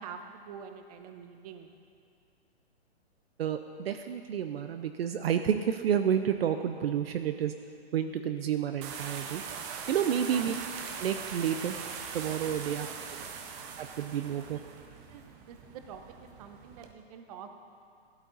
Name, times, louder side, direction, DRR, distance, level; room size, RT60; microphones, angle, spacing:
voice 1, 0.0-1.7 10.1-10.5 12.5-14.5 15.1-17.6, right 6 dB, 35° right, 6 dB, 0.9 m, -47 dB
voice 2, 3.4-7.5 7.9-9.4 9.9-10.5 11.0-11.8 12.1-12.9 13.1-13.3 13.8-14.6, right 9 dB, 65° right, 8 dB, 0.7 m, -30 dB
sound 1, 8.8-16.9, right 6 dB, 15° right, 0.5 m, -41 dB
14.0 x 12.0 x 4.0 m, 2.4 s
hypercardioid pair, 155°, 33 cm